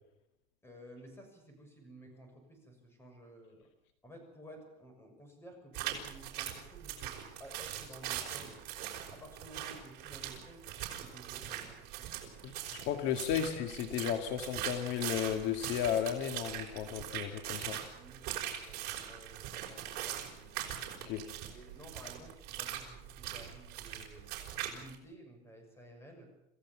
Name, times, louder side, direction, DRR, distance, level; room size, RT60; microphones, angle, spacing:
voice 1, 0.6-3.7 4.0-8.6 9.1-12.5 17.6-20.9 21.4-24.3 24.7-26.3, equal, 10° left, 4 dB, 6.7 m, -54 dB
sound 1, 5.7-24.9, right 11 dB, 55° right, 5.4 m, -41 dB
voice 2, 12.4-17.8 21.0-21.2, left 9 dB, 60° left, 6 dB, 1.9 m, -34 dB
27.0 x 16.0 x 7.3 m, 0.84 s
cardioid pair, 145°, 20 cm